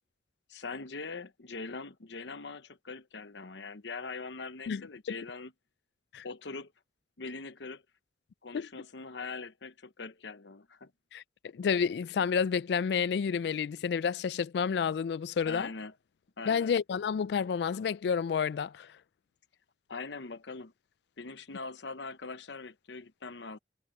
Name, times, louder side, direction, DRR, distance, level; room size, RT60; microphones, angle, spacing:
voice 1, 0.5-5.5 6.2-6.7 7.2-7.8 8.4-10.9 15.4-15.9 16.4-16.7 19.9-20.7 21.2-23.6, left 4 dB, 90° left, 1.0 m, -42 dB
voice 2, 11.5-15.7 16.5-18.9, left 6 dB, 70° left, 0.3 m, -30 dB
head